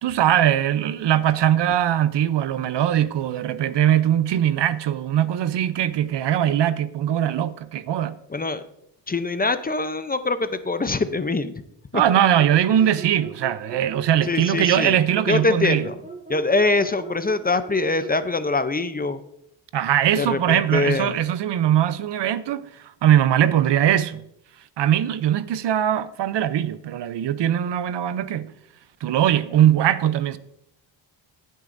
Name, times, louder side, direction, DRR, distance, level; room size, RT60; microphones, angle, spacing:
voice 1, 0.0-8.2 11.9-15.9 19.7-24.3 24.8-28.5 29.0-30.4, right 11 dB, 65° right, 0.7 m, -21 dB
voice 2, 8.3-8.6 9.1-11.6 11.9-12.0 14.3-15.0 15.3-16.0 16.3-19.2 20.2-21.2, left 3 dB, 20° left, 0.6 m, -23 dB
sound 1, 12.5-18.2, right 3 dB, 20° right, 3.0 m, -39 dB
15.5 x 9.4 x 2.6 m
cardioid pair, 90°, 45 cm